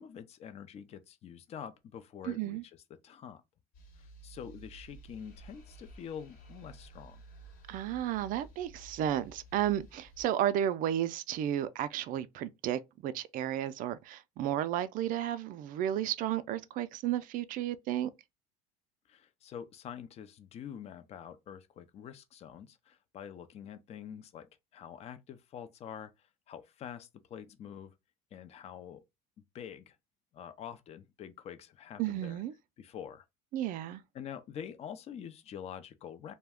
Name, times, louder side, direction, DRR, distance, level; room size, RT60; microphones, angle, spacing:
voice 1, 0.0-3.4 4.0-7.2 19.1-26.1 26.5-27.9 28.3-29.0 29.5-30.0 30.3-32.4 32.8-33.2 34.1-36.3, left 8 dB, 40° left, 0.5 m, -46 dB
voice 2, 2.3-2.6 7.7-18.1 32.0-32.5 33.5-34.0, right 11 dB, 55° right, 0.4 m, -33 dB
sound 1, 3.7-10.2, right 2 dB, 60° left, 1.0 m, -53 dB
2.3 x 2.1 x 3.4 m
supercardioid pair, 100°, 17 cm